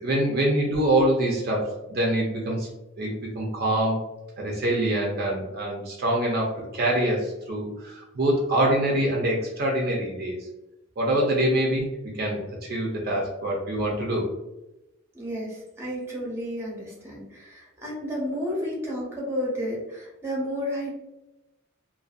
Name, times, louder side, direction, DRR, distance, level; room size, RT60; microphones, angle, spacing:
voice 1, 0.0-2.7 3.0-4.0 4.4-10.4 11.0-14.2, right 1 dB, 55° right, -2 dB, 0.5 m, -25 dB
voice 2, 15.1-20.9, equal, 15° right, -5 dB, 0.8 m, -31 dB
2.5 x 2.2 x 2.4 m, 0.96 s
head